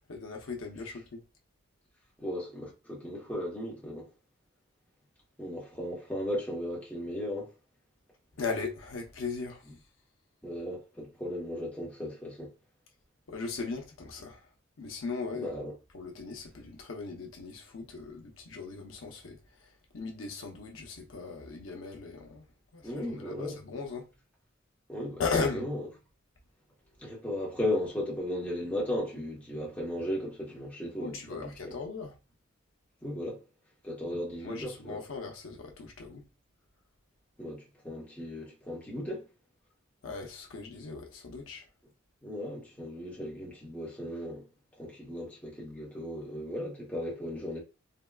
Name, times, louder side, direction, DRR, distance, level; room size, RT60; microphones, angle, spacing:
voice 1, 0.1-1.2 8.4-9.6 13.3-14.4 14.8-15.6 15.9-19.4 19.9-22.5 22.7-24.1 25.2-25.7 31.0-32.2 34.4-36.2 40.0-41.7, left 4 dB, 85° left, 0.7 m, -37 dB
voice 2, 2.2-4.1 5.4-7.5 10.4-12.5 15.3-15.7 22.8-23.6 24.9-25.2 25.5-25.8 27.0-31.7 33.0-33.4 33.8-35.0 37.4-39.2 42.2-44.4 44.8-47.6, left 1 dB, 5° left, 0.9 m, -36 dB
3.5 x 2.1 x 2.2 m
head